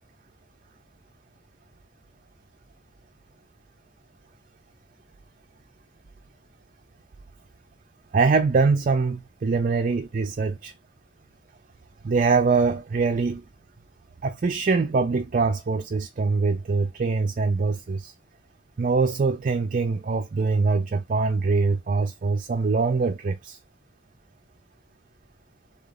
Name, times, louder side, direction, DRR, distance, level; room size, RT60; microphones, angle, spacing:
voice 1, 8.1-10.7 12.0-13.4 14.2-18.1 18.8-23.6, right 4 dB, 45° right, 0.4 m, -23 dB
3.7 x 3.1 x 3.8 m
head